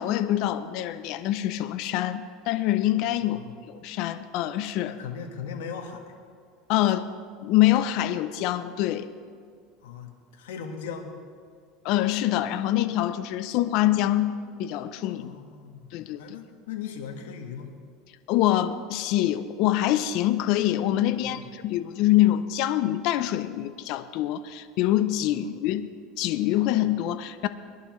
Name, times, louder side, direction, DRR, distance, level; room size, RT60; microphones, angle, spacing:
voice 1, 0.0-3.4 3.7-5.0 6.7-7.1 7.4-9.1 11.8-14.3 14.6-15.3 15.9-16.2 18.3-25.9 26.2-27.5, left 13 dB, 60° left, 11 dB, 0.6 m, -25 dB
voice 2, 3.2-3.6 4.9-6.0 9.8-11.1 15.0-15.9 16.2-17.7 21.1-21.5 25.4-25.5, left 7 dB, 90° left, 2 dB, 1.6 m, -38 dB
21.5 x 11.0 x 3.2 m, 2.1 s
supercardioid pair, 125°, 0 cm